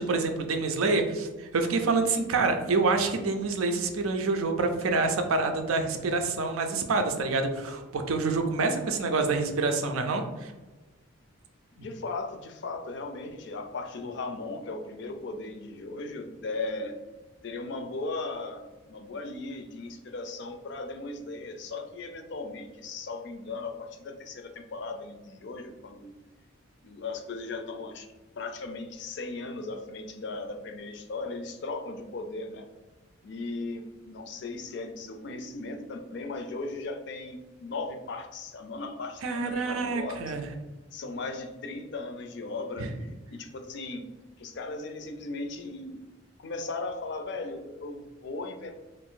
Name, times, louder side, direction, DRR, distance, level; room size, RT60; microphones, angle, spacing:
voice 1, 0.0-10.5 39.2-40.4 42.8-42.9, right 3 dB, 85° right, 6 dB, 0.5 m, -27 dB
voice 2, 11.8-16.9 17.4-26.2 26.8-28.1 28.4-32.7 33.2-40.3 40.9-44.0 44.4-46.0 46.4-48.8, left 3 dB, 55° left, 5 dB, 0.4 m, -37 dB
2.6 x 2.5 x 3.7 m, 1.1 s
head